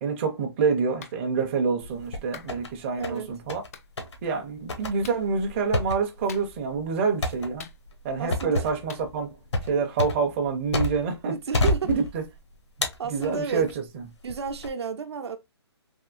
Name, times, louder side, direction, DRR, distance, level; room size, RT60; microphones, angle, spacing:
voice 1, 0.0-3.6 4.2-7.7 8.0-9.3 9.6-11.3 11.9-12.2 13.1-14.0, right 5 dB, 25° right, 0.6 m, -27 dB
Clapping, 1.0-1.2 2.3-2.5 3.7-3.9 5.0-5.2 6.3-6.7 7.6-8.2 8.9-9.1, left 7 dB, 35° left, 0.3 m, -44 dB
sound 1, 1.8-2.7 3.0-3.7 4.0-4.2 4.7-11.2 11.5-12.4 12.8-13.7 14.3-14.7, left 1 dB, 85° left, 1.0 m, -29 dB
voice 2, 2.9-3.3 8.2-8.7 11.3-11.9 13.0-13.6 14.2-15.4, right 5 dB, 70° right, 0.7 m, -32 dB
3.5 x 2.7 x 2.4 m
hypercardioid pair, 155°, 14 cm